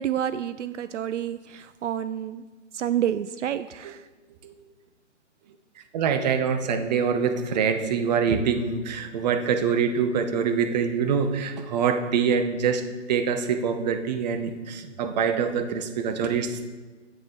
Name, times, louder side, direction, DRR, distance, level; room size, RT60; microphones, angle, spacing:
voice 1, 0.0-2.4 2.7-4.1 14.8-14.9, right 10 dB, 75° right, 14 dB, 0.5 m, -29 dB
voice 2, 5.9-16.7, right 6 dB, 35° right, 8 dB, 0.8 m, -25 dB
9.5 x 7.8 x 3.8 m, 1.3 s
hypercardioid pair, 145°, 37 cm